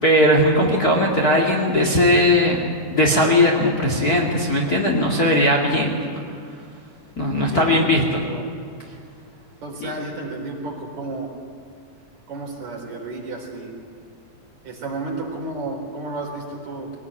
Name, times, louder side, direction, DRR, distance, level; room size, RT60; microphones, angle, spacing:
voice 1, 0.0-2.6 2.9-6.0 7.2-8.2 9.8-9.9, left 1 dB, 30° left, 0 dB, 2.3 m, -18 dB
voice 2, 7.5-8.4 9.6-11.3 12.3-13.7 14.6-16.9, right 2 dB, 55° right, 0 dB, 5.3 m, -32 dB
23.0 x 18.0 x 9.9 m, 2.4 s
omnidirectional pair, 3.9 m